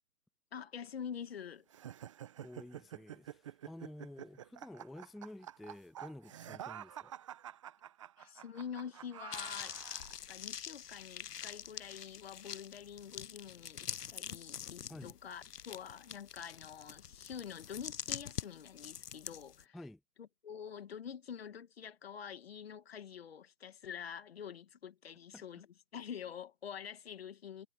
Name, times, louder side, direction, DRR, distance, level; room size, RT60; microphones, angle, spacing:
voice 1, 0.5-1.7 8.2-9.8 10.3-19.8 20.2-25.7 25.9-27.7, left 8 dB, 40° left, 2.0 m, -46 dB
sound 1, 1.7-10.2, right 11 dB, 20° right, 1.2 m, -49 dB
voice 2, 2.4-7.2 14.9-15.2 19.7-20.0 25.3-25.4, left 1 dB, ahead, 0.4 m, -51 dB
sound 2, 9.3-19.6, left 9 dB, 75° left, 0.8 m, -45 dB
hypercardioid pair, 160°, 47 cm